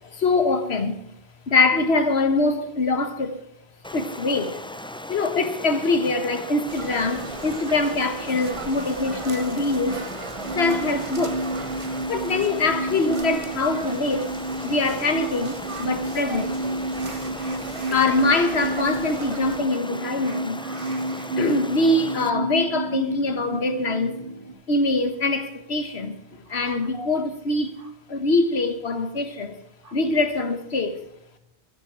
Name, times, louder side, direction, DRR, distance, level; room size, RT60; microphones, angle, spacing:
voice 1, 0.0-1.0 1.5-3.4 3.9-4.6 5.1-10.0 10.5-11.4 12.1-14.3 14.6-16.5 17.1-17.2 17.9-20.6 21.4-24.2 24.7-26.2 26.5-27.7 28.1-29.6 29.9-31.0, left 3 dB, 80° left, 1.5 m, -23 dB
Stream, 3.8-22.3, left 1 dB, 5° left, 0.5 m, -38 dB
sound 1, 6.7-19.6, right 3 dB, 35° right, 0.9 m, -37 dB
sound 2, 10.4-24.5, right 2 dB, 70° right, 2.3 m, -31 dB
voice 2, 16.9-18.0 20.2-21.3 26.5-27.1 29.8-29.9, right 1 dB, 55° right, 2.7 m, -43 dB
14.0 x 9.4 x 6.1 m
omnidirectional pair, 1.1 m